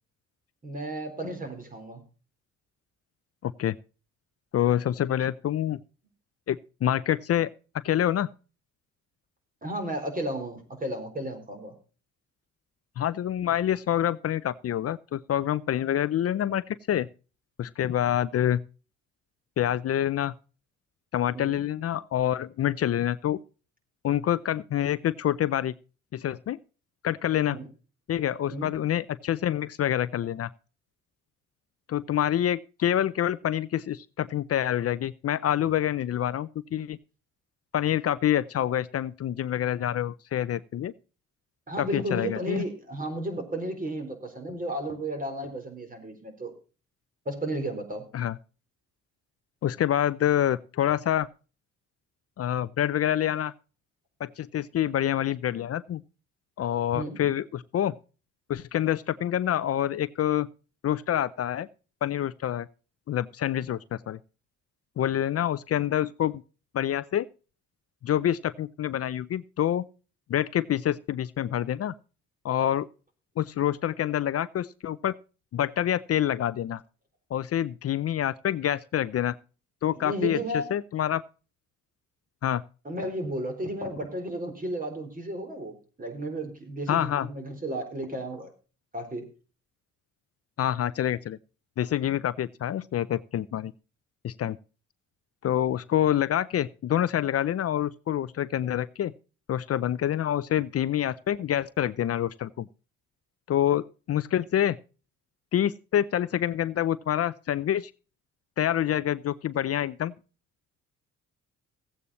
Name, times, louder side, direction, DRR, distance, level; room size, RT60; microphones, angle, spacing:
voice 1, 0.6-2.0 9.6-11.7 21.3-21.6 27.5-27.7 28.5-28.7 41.7-46.5 47.3-48.1 56.9-57.2 79.9-80.7 82.8-88.5 88.9-89.2, right 1 dB, 30° right, 4.1 m, -33 dB
voice 2, 3.4-3.7 4.5-5.8 6.5-7.5 7.8-8.3 13.0-17.1 17.6-18.6 19.6-20.3 21.1-23.4 24.0-25.7 26.1-26.6 27.0-27.6 28.1-30.5 31.9-37.0 37.7-40.9 41.8-42.6 48.1-48.3 49.6-51.3 52.4-53.5 54.2-56.0 56.6-57.9 58.5-60.5 60.8-61.7 62.0-62.7 63.1-64.2 65.0-66.4 66.7-67.3 68.0-69.9 70.3-71.9 72.4-72.9 73.4-75.1 75.5-76.8 77.3-79.3 79.8-80.4 80.7-81.2 82.4-82.6 86.9-87.3 90.6-91.4 91.8-93.7 94.2-94.6 95.4-99.1 99.5-102.7 103.5-104.8 105.5-107.9 108.6-110.1, left 11 dB, 50° left, 0.6 m, -27 dB
15.0 x 8.5 x 4.2 m
cardioid pair, 90°, 30 cm